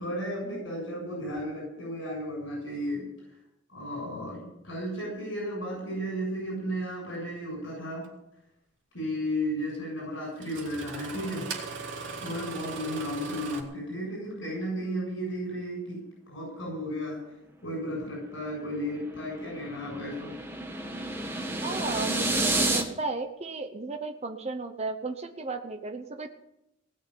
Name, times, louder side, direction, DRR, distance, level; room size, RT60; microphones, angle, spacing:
voice 1, 0.0-3.0 3.7-8.0 8.9-11.5 11.8-17.3 17.6-20.4, equal, 75° left, -3 dB, 7.4 m, -34 dB
Engine starting, 8.0-8.1 9.7-9.8 10.4-13.6, right 4 dB, 70° right, 3.1 m, -38 dB
sound 1, 18.5-22.8, right 2 dB, 10° right, 1.6 m, -30 dB
voice 2, 21.6-26.3, right 3 dB, 35° right, 4 dB, 0.9 m, -34 dB
18.5 x 6.5 x 9.8 m, 0.86 s
head